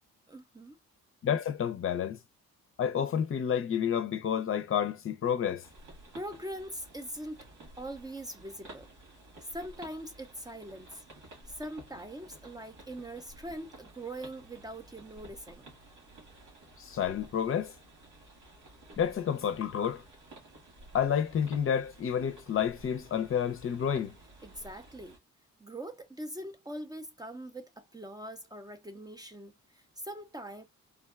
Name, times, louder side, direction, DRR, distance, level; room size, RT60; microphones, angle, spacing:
voice 1, 0.3-0.8 6.1-7.4 7.8-8.9 9.5-11.0 11.5-15.7 24.4-25.2 25.6-30.6, right 1 dB, 15° right, 0.5 m, -42 dB
voice 2, 1.2-2.2 2.8-5.6 16.8-17.7 19.0-20.0 20.9-24.2, left 8 dB, 45° left, 0.6 m, -30 dB
sound 1, 5.6-25.2, right 1 dB, 85° right, 2.0 m, -53 dB
3.5 x 2.2 x 2.3 m
cardioid pair, 90°, 30 cm